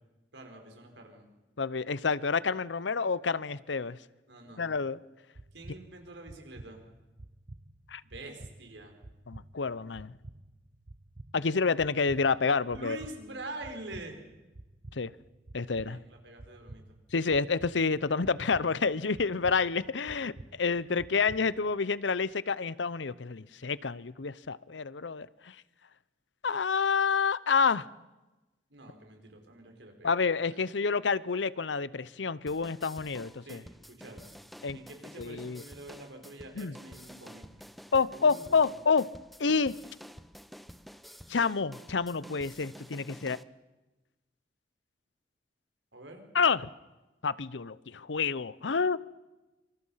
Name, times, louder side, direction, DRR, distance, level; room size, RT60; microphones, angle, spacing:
voice 1, 0.3-1.3 4.3-4.6 5.5-6.8 8.0-8.9 12.7-14.2 15.8-17.0 28.7-30.2 30.5-30.6 33.4-34.3 34.7-37.5 38.1-38.7 45.9-46.3, right 2 dB, 85° right, 5.2 m, -46 dB
voice 2, 1.6-4.0 4.6-5.0 7.9-8.0 9.3-10.1 11.3-13.0 15.0-15.1 15.5-16.0 17.1-25.5 26.4-27.9 30.0-33.6 34.6-34.8 35.2-35.6 36.6-36.7 37.9-39.1 39.4-39.7 41.3-43.4 46.3-46.7 47.2-49.0, left 5 dB, 90° left, 0.8 m, -28 dB
sound 1, 5.4-21.7, right 1 dB, 50° right, 0.9 m, -51 dB
sound 2, 32.5-43.4, equal, ahead, 0.8 m, -50 dB
26.5 x 26.5 x 5.7 m
head